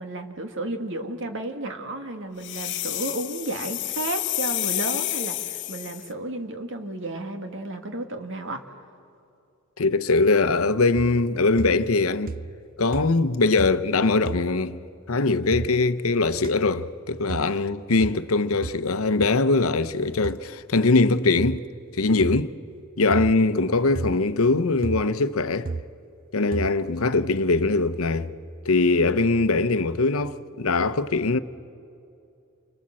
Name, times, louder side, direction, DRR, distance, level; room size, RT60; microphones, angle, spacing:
voice 1, 0.0-8.6, right 2 dB, 65° right, 2.2 m, -32 dB
sound 1, 2.4-6.1, left 15 dB, 60° left, 1.0 m, -29 dB
voice 2, 9.8-12.4 12.8-14.8 15.1-21.6 21.9-22.5 23.0-25.7 26.3-28.3 28.6-31.4, left 3 dB, 85° left, 0.8 m, -22 dB
sound 2, 10.9-11.3 11.6-12.0 12.3-12.7 12.9-13.3 13.6-13.9 14.2-14.5 15.5-15.7 16.4-16.5 17.3-17.5 18.0-18.2 18.6-18.8 19.2-19.3 20.2-20.4 21.4-21.6 22.2-22.5 23.1-23.4 23.9-24.2 24.8-25.1 25.6-25.9 26.5-26.8, right 3 dB, 45° right, 0.6 m, -32 dB
29.5 x 25.0 x 7.6 m
head